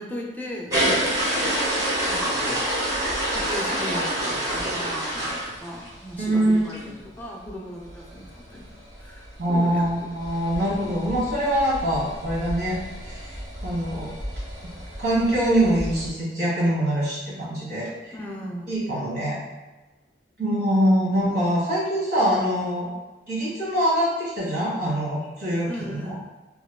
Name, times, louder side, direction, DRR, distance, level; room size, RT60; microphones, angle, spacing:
voice 1, 0.0-1.3 2.0-2.9 3.3-6.8 7.2-8.7 9.0-10.1 18.1-18.7 25.7-26.2, equal, 10° left, -2 dB, 0.5 m, -37 dB
sound 1, 0.7-6.2 6.6-6.8 7.2-7.3 7.4-7.5 7.8-16.1, right 1 dB, 20° right, 1.2 m, -29 dB
voice 2, 6.2-6.9 9.4-13.4 13.6-14.1 15.0-18.1 18.7-19.4 20.4-22.9 23.3-26.1, right 1 dB, 65° right, -7 dB, 1.5 m, -24 dB
3.2 x 2.9 x 2.3 m, 1.2 s
head